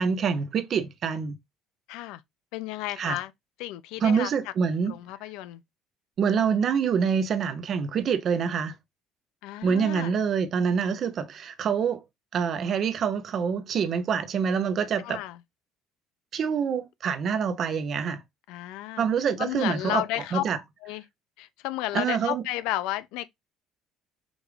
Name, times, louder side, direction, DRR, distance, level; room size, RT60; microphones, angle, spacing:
voice 1, 0.0-1.4 3.0-3.2 4.0-4.9 6.2-8.8 9.6-12.0 12.3-15.2 16.3-18.2 19.0-20.0 20.3-20.6 21.9-22.4, right 6 dB, 35° right, 0.5 m, -26 dB
voice 2, 1.9-2.2 2.5-3.3 3.6-4.3 4.9-5.6 9.4-10.1 15.0-15.4 18.5-19.1 19.4-20.4 20.8-21.0 21.4-23.3, left 15 dB, 85° left, 0.4 m, -32 dB
4.9 x 2.4 x 3.1 m
cardioid pair, 180°, 0 cm